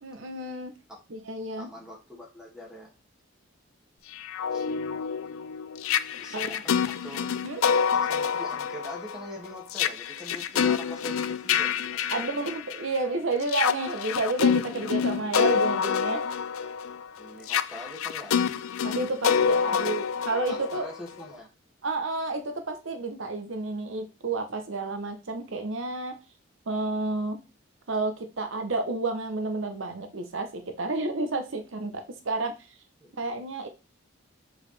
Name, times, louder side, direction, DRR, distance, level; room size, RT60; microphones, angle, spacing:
voice 1, 0.0-0.7 1.1-1.7 6.3-6.6 7.4-7.6 12.1-16.2 18.8-20.9 21.8-26.2 26.7-27.4 27.9-32.8 33.2-33.7, right 3 dB, 70° right, 7 dB, 0.9 m, -31 dB
voice 2, 1.6-2.9 4.5-4.7 6.1-7.4 7.9-12.3 17.2-18.3 19.4-19.9 20.5-21.5 33.0-33.1, left 1 dB, 5° right, -2 dB, 2.0 m, -43 dB
sound 1, 4.1-13.0 13.4-21.2, left 7 dB, 90° left, 0.4 m, -27 dB
6.5 x 4.9 x 3.3 m, 0.29 s
head